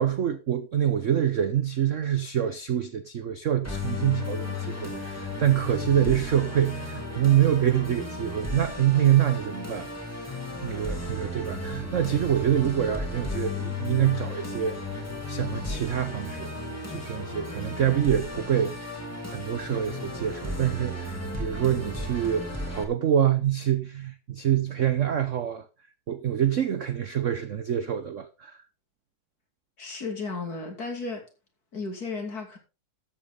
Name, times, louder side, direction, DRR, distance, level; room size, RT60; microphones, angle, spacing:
voice 1, 0.0-9.9 10.6-16.5 16.9-18.7 19.2-25.7 26.1-28.6, right 10 dB, 70° right, 0.7 m, -26 dB
Musical instrument, 3.6-22.8, left 2 dB, 5° left, 2.7 m, -34 dB
voice 2, 29.8-31.3 31.7-32.6, left 3 dB, 45° left, 3.2 m, -34 dB
13.0 x 8.6 x 3.8 m
omnidirectional pair, 2.4 m